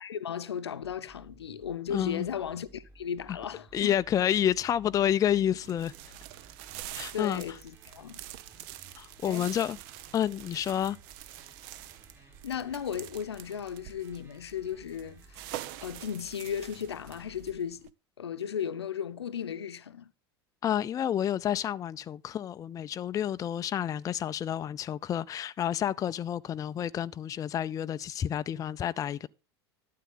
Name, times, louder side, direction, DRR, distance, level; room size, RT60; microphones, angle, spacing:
voice 1, 0.0-4.0 7.1-7.6 7.9-8.2 9.3-9.5 12.4-15.5 15.8-17.9 18.2-20.1, left 8 dB, 80° left, 0.8 m, -35 dB
sound 1, 0.8-17.5, right 1 dB, 20° right, 6.4 m, -57 dB
voice 2, 1.9-2.3 3.7-5.9 6.9-7.4 9.0-9.8 10.1-11.0 20.6-29.3, left 10 dB, 25° left, 0.5 m, -29 dB
sound 2, 5.6-17.9, right 14 dB, 55° right, 0.8 m, -46 dB
12.5 x 8.5 x 3.9 m
figure-of-eight pair, 80°, 14 cm